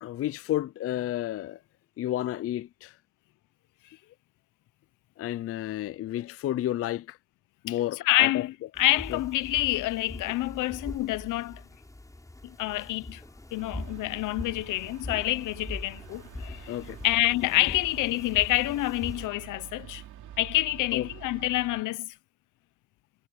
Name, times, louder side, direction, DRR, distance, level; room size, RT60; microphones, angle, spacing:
voice 1, 0.0-1.6 2.0-2.9 5.2-7.2 7.6-8.5 9.1-9.2 16.7-17.0 20.9-21.1, left 13 dB, 50° left, 0.4 m, -31 dB
voice 2, 8.0-11.6 12.4-13.2 13.5-16.8 17.0-20.0 20.4-22.1, left 17 dB, 85° left, 0.8 m, -27 dB
sound 1, 8.8-19.3, left 1 dB, 10° left, 6.4 m, -42 dB
sound 2, 13.6-21.8, right 11 dB, 80° right, 2.7 m, -47 dB
cardioid pair, 90°, 30 cm